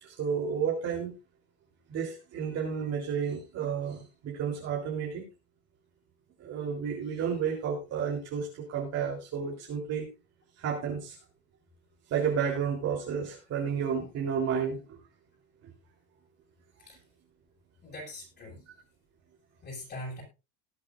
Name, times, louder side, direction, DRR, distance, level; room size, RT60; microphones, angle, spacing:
voice 1, 0.0-1.1 1.9-5.3 6.4-10.1 10.6-11.2 12.1-15.0 15.6-15.7, right 7 dB, 40° right, -1 dB, 3.6 m, -31 dB
voice 2, 17.8-18.6 19.6-20.2, left 1 dB, 25° left, -1 dB, 6.4 m, -41 dB
19.5 x 8.8 x 2.5 m, 0.28 s
cardioid pair, 145°, 37 cm